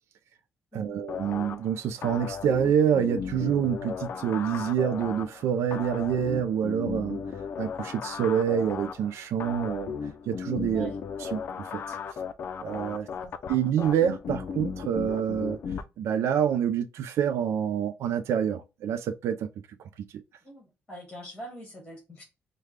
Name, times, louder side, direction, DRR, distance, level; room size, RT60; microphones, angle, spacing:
voice 1, 0.7-7.2 7.6-9.9 10.3-10.9 11.3-12.0 12.6-13.1 13.5-15.6 16.0-19.5, right 8 dB, 80° right, 0.4 m, -27 dB
sound 1, 1.1-15.8, left 6 dB, 55° left, 0.4 m, -36 dB
voice 2, 13.0-13.3 20.4-22.2, equal, 15° left, 1.8 m, -43 dB
5.0 x 2.2 x 3.2 m
cardioid pair, 140°, 5 cm